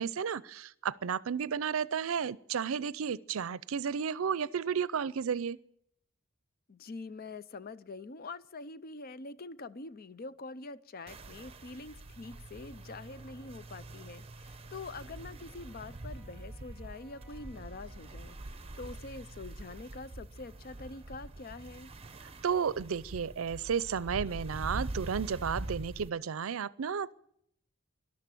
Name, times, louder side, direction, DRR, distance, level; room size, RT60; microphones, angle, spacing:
voice 1, 0.0-5.6 22.4-27.1, right 7 dB, 85° right, 20 dB, 0.5 m, -33 dB
voice 2, 6.7-21.9, left 3 dB, 45° left, 16 dB, 0.6 m, -45 dB
sound 1, 11.1-26.1, right 2 dB, 30° right, 0.9 m, -44 dB
Wind instrument woodwind instrument, 14.9-19.1, right 2 dB, 10° right, 3.2 m, -64 dB
13.0 x 12.0 x 9.1 m, 0.74 s
head